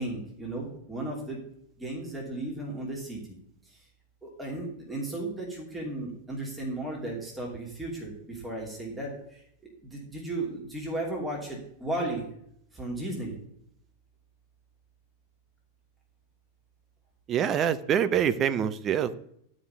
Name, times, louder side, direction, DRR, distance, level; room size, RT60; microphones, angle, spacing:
voice 1, 0.0-1.4 1.8-3.2 3.7-3.8 4.2-12.3 12.7-13.4, right 2 dB, 10° right, -3 dB, 2.8 m, -35 dB
voice 2, 17.3-19.1, right 9 dB, 30° right, 11 dB, 0.6 m, -25 dB
11.5 x 5.2 x 6.9 m, 0.71 s
figure-of-eight pair, 90°, 0 cm